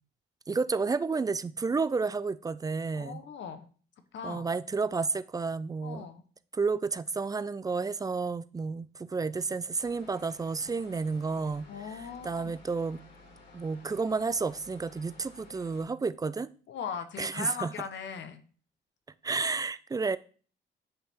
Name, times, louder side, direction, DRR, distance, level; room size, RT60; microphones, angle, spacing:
voice 1, 0.5-3.2 4.2-6.1 6.5-11.7 12.2-13.0 13.5-16.5 17.2-17.7 19.2-20.2, right 4 dB, 20° right, 0.3 m, -31 dB
voice 2, 2.9-3.7 4.1-4.5 5.8-6.2 11.7-12.5 16.7-18.4, left 7 dB, 65° left, 1.0 m, -39 dB
sound 1, 9.8-15.8, left 2 dB, 90° left, 3.9 m, -54 dB
8.8 x 3.5 x 4.4 m
cardioid pair, 90°, 20 cm